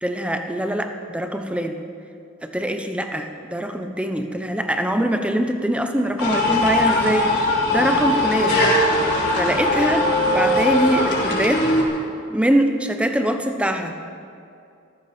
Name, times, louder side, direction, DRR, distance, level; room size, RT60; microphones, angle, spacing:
voice 1, 0.0-1.8 2.4-8.6 9.4-11.7 12.3-13.9, right 1 dB, 5° right, 6 dB, 1.0 m, -23 dB
sound 1, 6.2-11.8, left 1 dB, 55° left, 3.7 m, -20 dB
14.5 x 14.0 x 6.1 m, 2.5 s
head